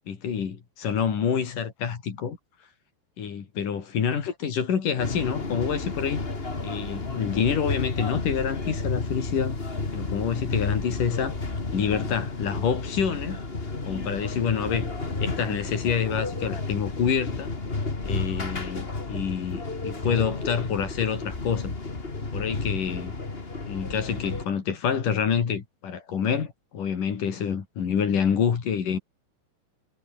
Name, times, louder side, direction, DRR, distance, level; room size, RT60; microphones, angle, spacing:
voice 1, 0.1-2.4 3.2-6.2 6.6-9.6 9.9-11.3 11.7-13.4 13.8-14.9 15.2-17.5 18.0-21.7 22.3-23.1 23.7-29.0, left 7 dB, 50° left, 4.1 m, -27 dB
sound 1, 5.0-24.5, left 3 dB, 25° left, 1.4 m, -32 dB
omnidirectional pair, 5.3 m